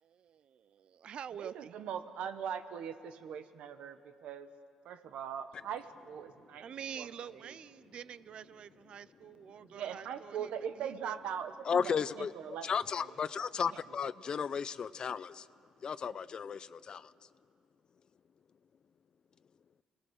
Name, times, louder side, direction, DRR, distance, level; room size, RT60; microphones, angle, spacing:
voice 1, 0.0-1.7 6.6-11.2, right 8 dB, 55° right, 17 dB, 0.6 m, -47 dB
voice 2, 1.4-4.5 4.8-6.6 6.9-7.1 7.3-7.5 9.6-13.1 13.7-13.8, right 8 dB, 80° right, 9 dB, 1.3 m, -41 dB
voice 3, 11.7-12.3 12.6-15.5 15.8-17.1, left 6 dB, 45° left, 16 dB, 0.5 m, -34 dB
29.0 x 19.5 x 6.6 m, 2.3 s
cardioid pair, 115°, 2 cm